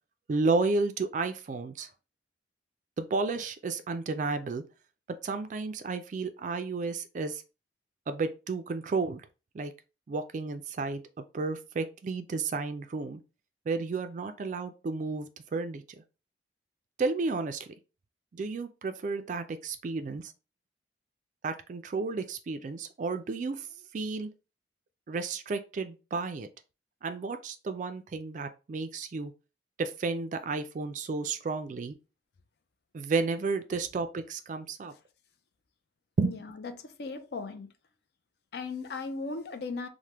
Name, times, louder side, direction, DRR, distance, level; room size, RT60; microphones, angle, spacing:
voice 1, 0.3-1.9 3.0-4.6 5.2-7.4 8.1-9.2 9.5-9.7 10.1-11.0 11.3-13.2 13.7-15.8 17.0-17.7 18.3-20.3 21.4-23.7 23.9-24.3 25.1-26.5 27.0-29.3 29.8-32.0 32.9-34.9 36.2-36.4, right 4 dB, 45° right, 0.3 m, -32 dB
voice 2, 36.2-37.7 38.5-39.9, left 4 dB, 60° left, 0.4 m, -37 dB
3.3 x 2.1 x 2.8 m
head